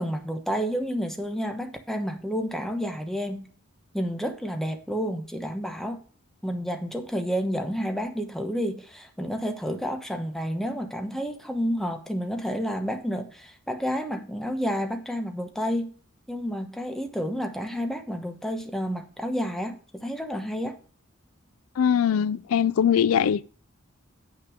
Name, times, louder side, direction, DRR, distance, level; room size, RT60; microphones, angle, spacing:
voice 1, 0.0-3.5 3.9-6.0 6.4-15.9 16.3-20.8, equal, ahead, 1.1 m, -30 dB
voice 2, 21.8-23.4, left 8 dB, 90° left, 0.4 m, -21 dB
8.3 x 5.9 x 4.9 m
head